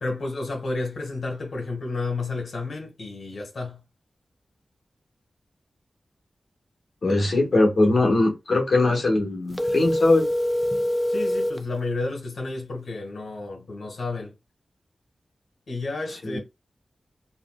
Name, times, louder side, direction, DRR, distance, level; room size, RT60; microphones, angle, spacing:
voice 1, 0.0-3.8 11.1-14.3 15.7-16.4, left 3 dB, 85° left, 1.2 m, -31 dB
voice 2, 7.0-10.3 16.2-16.4, left 2 dB, 65° left, 0.9 m, -21 dB
sound 1, 9.5-11.6, left 1 dB, 5° left, 0.3 m, -24 dB
4.1 x 2.0 x 2.2 m
wide cardioid pair, 110°, 0 cm